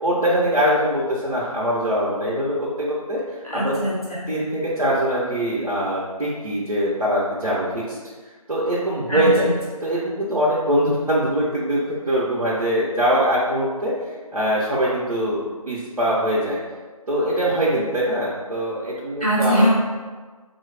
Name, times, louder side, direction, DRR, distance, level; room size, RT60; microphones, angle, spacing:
voice 1, 0.0-3.8 4.3-8.0 8.5-9.5 9.8-13.9 14.3-16.6 17.1-19.7, equal, 80° right, -7 dB, 0.9 m, -22 dB
voice 2, 3.4-4.3 9.1-9.5 19.2-19.7, equal, ahead, -25 dB, 0.7 m, -22 dB
4.0 x 2.3 x 3.3 m, 1.4 s
figure-of-eight pair, 160°, 19 cm